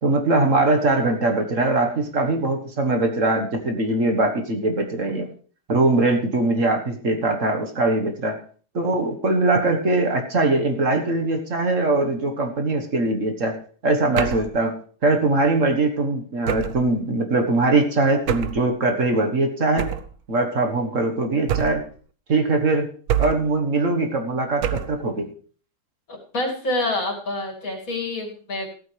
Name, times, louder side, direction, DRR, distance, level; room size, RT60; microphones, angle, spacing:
voice 1, 0.0-5.3 5.7-8.4 8.7-13.6 13.8-14.7 15.0-19.9 20.3-21.8 22.3-22.9 23.2-25.3, right 2 dB, 50° right, 4 dB, 1.8 m, -21 dB
sound 1, 14.2-14.6 16.5-16.9 18.3-18.7 19.8-20.2 21.5-21.9 23.1-23.6 24.6-25.0, right 10 dB, 65° right, 1.2 m, -25 dB
voice 2, 26.1-28.7, left 2 dB, 55° left, 1 dB, 3.0 m, -27 dB
15.0 x 13.5 x 3.3 m, 0.43 s
omnidirectional pair, 1.8 m